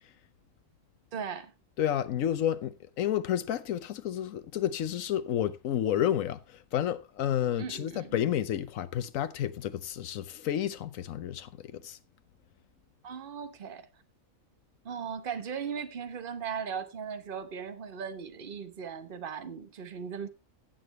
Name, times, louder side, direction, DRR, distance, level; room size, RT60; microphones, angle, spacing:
voice 1, 1.1-1.5 7.6-8.1 13.0-13.9 14.8-20.3, right 7 dB, 45° right, 1.1 m, -38 dB
voice 2, 1.8-12.0, left 10 dB, 80° left, 1.2 m, -30 dB
16.0 x 6.9 x 3.1 m
omnidirectional pair, 1.4 m